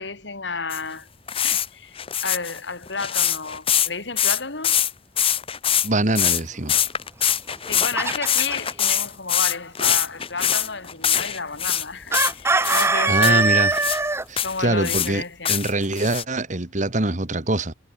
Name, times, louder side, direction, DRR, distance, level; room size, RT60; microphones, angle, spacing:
voice 1, 0.0-2.0 2.2-4.8 7.6-13.5 14.4-15.6, left 4 dB, 70° left, 3.4 m, -31 dB
sound 1, 0.7-0.8 1.3-1.7 2.0-3.9 4.2-4.9 5.2-5.9 6.1-6.4 6.7-11.8 12.1-12.9 13.2-13.3 13.7-14.0 14.4-15.1 15.4-16.2, left 9 dB, 30° left, 0.9 m, -23 dB
voice 2, 5.8-6.8 12.7-13.7 14.3-15.2 15.5-17.7, right 2 dB, 40° right, 1.9 m, -24 dB
Chicken rooster, 7.5-8.7 12.1-14.2, right 3 dB, 15° right, 0.6 m, -21 dB
head